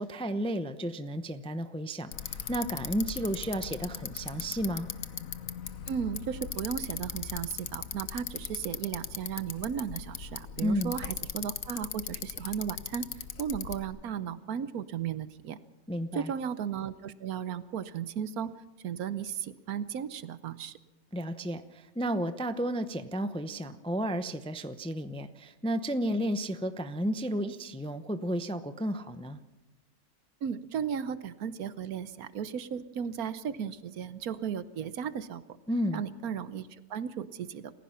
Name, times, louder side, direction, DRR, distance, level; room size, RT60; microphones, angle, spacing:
voice 1, 0.0-4.9 10.6-10.9 15.9-16.3 21.1-29.4 35.7-36.0, equal, 5° left, 10 dB, 0.5 m, -32 dB
Bicycle, 2.1-13.8, left 8 dB, 65° left, 1.3 m, -39 dB
voice 2, 5.9-13.1 13.4-15.6 16.1-18.5 18.8-20.8 30.4-35.4 35.9-37.7, right 8 dB, 70° right, 14 dB, 1.3 m, -35 dB
28.5 x 16.0 x 5.8 m, 1.0 s
omnidirectional pair, 1.6 m